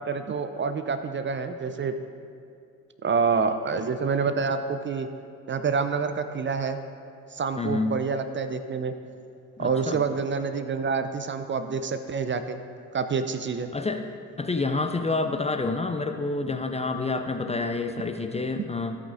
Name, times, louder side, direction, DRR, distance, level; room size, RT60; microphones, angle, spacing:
voice 1, 0.0-2.0 3.0-5.1 5.5-6.8 7.3-8.9 9.6-12.6 12.9-13.7, right 5 dB, 30° right, 9 dB, 0.5 m, -27 dB
voice 2, 7.6-8.0 9.6-10.0 13.7-14.0 14.4-19.0, left 3 dB, 15° left, 6 dB, 0.5 m, -28 dB
14.0 x 8.4 x 2.6 m, 2.4 s
figure-of-eight pair, 45°, 40 cm